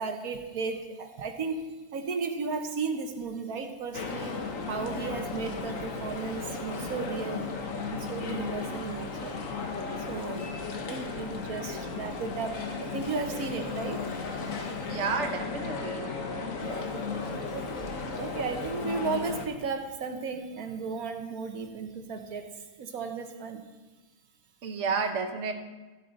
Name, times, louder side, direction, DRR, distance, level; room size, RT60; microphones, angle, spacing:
voice 1, 0.0-4.4 4.6-7.6 7.9-9.4 10.1-14.2 16.6-17.7 18.1-23.6, right 4 dB, 75° right, 5 dB, 1.5 m, -35 dB
sound 1, 3.9-19.5, left 4 dB, 65° left, 1.4 m, -35 dB
voice 2, 14.9-16.1 24.6-25.5, right 5 dB, 55° right, 4 dB, 1.4 m, -31 dB
14.5 x 8.2 x 4.1 m, 1.2 s
omnidirectional pair, 1.5 m